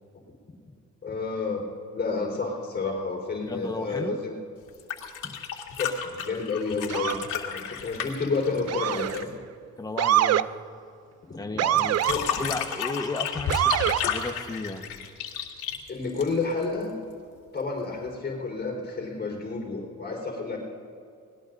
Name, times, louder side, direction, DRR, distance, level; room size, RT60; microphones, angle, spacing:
voice 1, 1.0-1.6 1.9-4.3 5.8-7.2 7.5-9.3 11.3-11.4 12.0-12.3 15.9-16.9 17.5-20.6, left 4 dB, 35° left, -1 dB, 4.3 m, -30 dB
voice 2, 3.4-4.2 5.2-5.4 9.8-10.5 11.3-12.0 12.4-14.9, left 3 dB, 15° left, 5 dB, 1.1 m, -34 dB
sound 1, 4.7-9.4 11.8-16.7 18.1-18.2, left 7 dB, 80° left, 2.2 m, -32 dB
Motor vehicle (road) / Siren, 6.9-7.3 8.7-9.2 10.0-10.5 11.6-12.2 13.5-14.0, right 12 dB, 55° right, 0.5 m, -24 dB
25.5 x 19.5 x 2.6 m, 2.5 s
cardioid pair, 90°, 30 cm